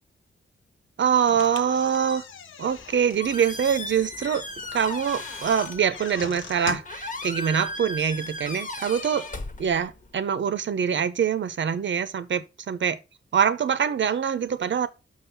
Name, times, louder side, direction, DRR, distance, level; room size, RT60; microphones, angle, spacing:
voice 1, 1.0-2.3 2.6-4.4 4.7-9.3 9.6-13.0 13.3-14.9, right 7 dB, 65° right, 0.8 m, -24 dB
sound 1, 1.3-7.1, left 7 dB, 75° left, 0.7 m, -41 dB
Squeak, 2.7-10.2, left 2 dB, 40° left, 1.3 m, -37 dB
6.3 x 5.6 x 5.8 m
wide cardioid pair, 115°, 20 cm